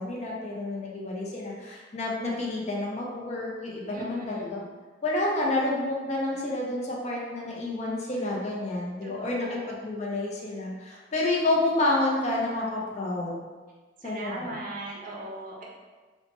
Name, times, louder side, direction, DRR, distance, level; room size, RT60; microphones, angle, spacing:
voice 1, 0.0-4.6 5.0-13.4 14.0-14.3, left 2 dB, 40° left, -3 dB, 0.5 m, -29 dB
voice 2, 3.9-4.6 9.0-9.7 14.0-15.6, right 1 dB, 45° right, -2 dB, 0.5 m, -39 dB
3.1 x 2.1 x 2.8 m, 1.3 s
head